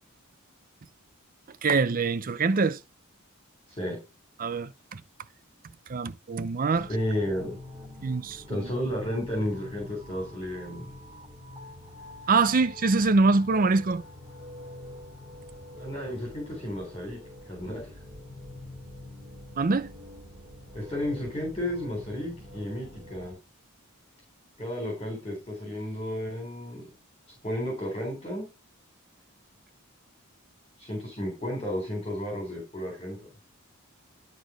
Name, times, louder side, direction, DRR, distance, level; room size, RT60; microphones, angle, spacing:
voice 1, 1.6-2.8 4.4-5.0 5.9-6.9 8.0-8.7 12.3-14.0 19.6-19.9, right 3 dB, 40° right, 0.5 m, -24 dB
sound 1, 6.7-23.3, left 1 dB, 15° right, 3.3 m, -45 dB
voice 2, 6.9-7.6 8.5-10.9 15.8-17.2 17.5-17.9 20.7-23.3 24.6-26.9 27.4-28.5 30.8-33.2, left 1 dB, 25° left, 3.6 m, -32 dB
11.5 x 4.2 x 4.9 m
head